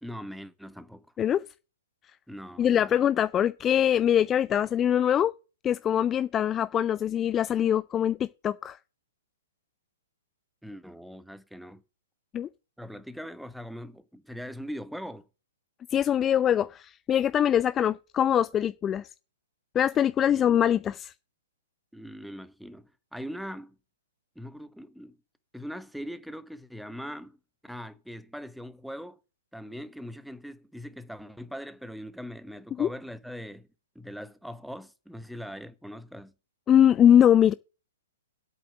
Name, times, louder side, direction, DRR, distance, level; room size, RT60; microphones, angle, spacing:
voice 1, 0.0-1.1 2.3-3.0 10.6-11.8 12.8-15.3 20.3-20.4 21.9-23.8 24.3-25.2 25.5-27.4 27.6-29.2 29.5-33.7 33.9-36.3, equal, ahead, 1.1 m, -41 dB
voice 2, 2.6-5.3 5.6-8.8 12.3-12.5 15.9-19.1 19.7-21.1 32.8-32.9 36.7-37.5, left 10 dB, 20° left, 0.4 m, -23 dB
8.5 x 6.7 x 7.7 m
figure-of-eight pair, 115°, 0 cm